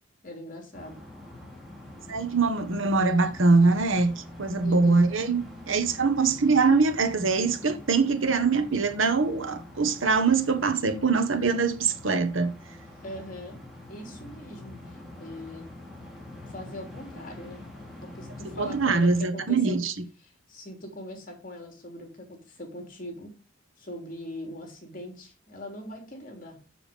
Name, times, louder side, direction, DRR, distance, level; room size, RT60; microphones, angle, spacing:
voice 1, 0.2-1.0 4.6-5.1 13.0-13.6 13.9-14.7 15.2-15.6 16.5-17.6 18.0-19.8 20.2-23.3 23.8-26.6, left 1 dB, 40° left, 3.1 m, -41 dB
sound 1, 0.7-19.2, left 1 dB, ahead, 2.7 m, -45 dB
voice 2, 2.1-12.5 18.6-19.9, right 4 dB, 75° right, 1.3 m, -23 dB
7.1 x 7.1 x 5.1 m
head